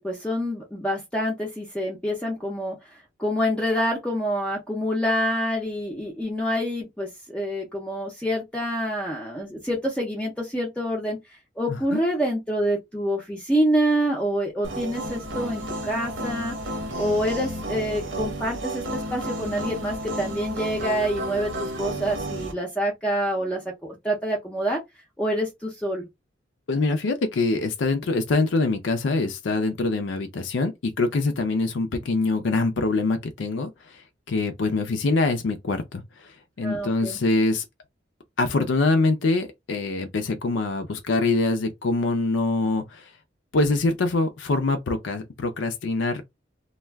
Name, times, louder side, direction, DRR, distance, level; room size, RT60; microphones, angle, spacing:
voice 1, 0.0-11.2 11.6-16.6 17.0-24.8 25.2-26.1 36.6-37.2, equal, 5° left, 0.5 m, -27 dB
sound 1, 14.6-22.5, right 1 dB, 75° right, 0.9 m, -32 dB
voice 2, 26.7-34.0 34.3-37.6 38.4-43.1 43.5-46.2, left 3 dB, 75° left, 0.5 m, -24 dB
2.3 x 2.2 x 3.3 m
head